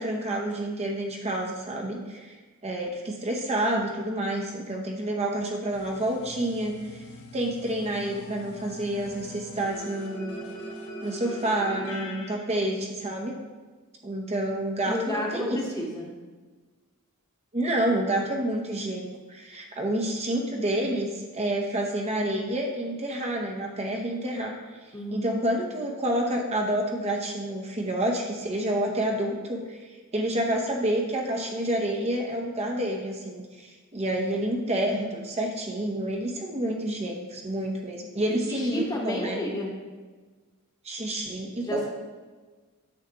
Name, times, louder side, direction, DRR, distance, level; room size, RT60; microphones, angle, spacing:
voice 1, 0.0-2.4 2.6-7.0 7.3-10.6 11.0-13.3 14.0-15.6 17.5-24.6 25.1-29.8 30.1-39.4 40.8-41.9, right 1 dB, 30° right, 0 dB, 0.8 m, -29 dB
sound 1, 5.7-12.3, equal, 85° left, 1.2 m, -41 dB
voice 2, 14.8-16.1 24.9-25.3 38.3-39.7 41.6-41.9, left 1 dB, 20° left, -1 dB, 1.2 m, -31 dB
9.5 x 7.1 x 2.9 m, 1.4 s
head